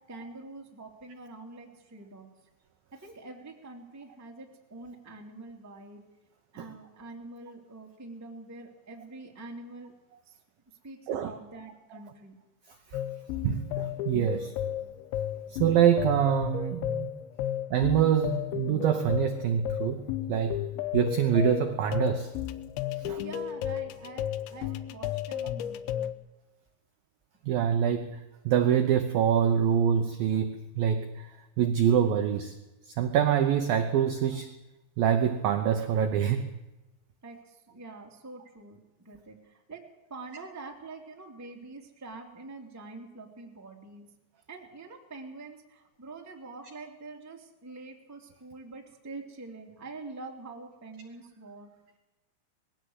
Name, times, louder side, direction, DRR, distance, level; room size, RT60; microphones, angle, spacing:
voice 1, 0.1-2.3 2.9-6.0 6.5-9.9 10.2-10.3 10.8-12.4 23.2-26.1 37.2-44.1 44.5-51.7, right 3 dB, 5° right, 1 dB, 1.3 m, -45 dB
sound 1, 12.9-26.1, left 11 dB, 80° left, 3.0 m, -33 dB
voice 2, 13.4-14.5 15.5-17.2 17.7-20.6 20.9-22.3 23.0-23.2 27.4-31.3 31.6-32.5 32.9-34.5 35.0-36.5, right 9 dB, 80° right, 7 dB, 2.1 m, -25 dB
20.5 x 16.0 x 8.0 m, 1.0 s
omnidirectional pair, 5.5 m